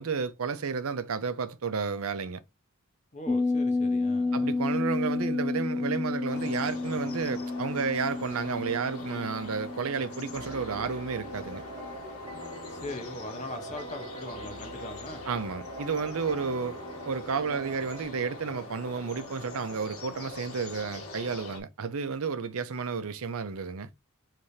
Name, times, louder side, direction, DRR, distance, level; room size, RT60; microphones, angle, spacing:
voice 1, 0.0-2.4 4.3-11.6 15.3-23.9, right 5 dB, 75° right, 0.6 m, -32 dB
voice 2, 3.1-4.5 12.7-15.2, left 2 dB, 35° left, 1.0 m, -40 dB
sound 1, 3.3-11.6 11.9-12.0, left 3 dB, 5° left, 0.3 m, -31 dB
sound 2, 6.3-21.6, left 2 dB, 75° left, 1.6 m, -43 dB
sound 3, 10.3-18.1, right 1 dB, 25° right, 2.5 m, -43 dB
4.9 x 3.3 x 2.7 m
head